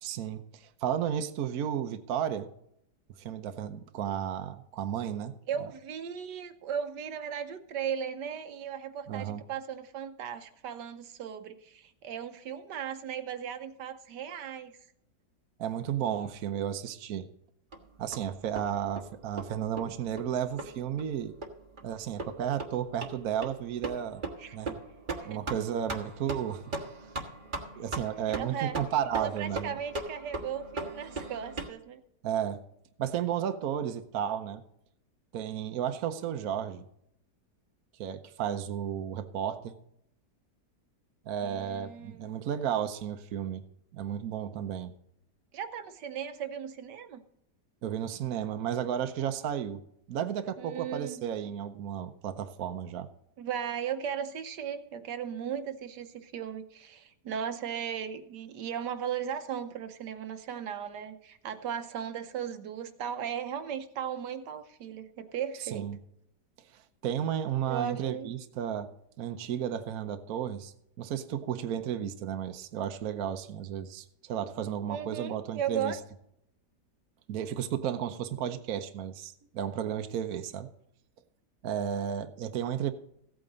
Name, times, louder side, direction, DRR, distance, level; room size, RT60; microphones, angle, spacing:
voice 1, 0.0-2.5 3.2-5.3 9.1-9.4 15.6-17.3 18.0-21.3 21.8-24.2 24.5-24.8 25.2-26.6 27.8-29.7 32.2-32.6 33.0-34.6 35.3-36.8 38.0-39.7 41.3-43.6 43.9-44.9 47.8-49.8 50.1-53.1 65.7-66.0 67.0-68.9 69.2-76.0 77.3-80.7 81.6-82.9, right 9 dB, 60° right, 8 dB, 1.1 m, -33 dB
voice 2, 5.5-14.7 24.4-24.6 25.2-25.4 28.3-28.8 29.2-32.0 41.4-42.3 45.5-47.2 50.6-51.3 53.4-65.9 67.6-68.3 74.9-76.0, right 8 dB, 75° right, 9 dB, 1.4 m, -37 dB
sound 1, 17.7-31.7, right 2 dB, 30° right, 1.3 m, -40 dB
15.5 x 8.8 x 3.9 m, 0.76 s
omnidirectional pair, 1.9 m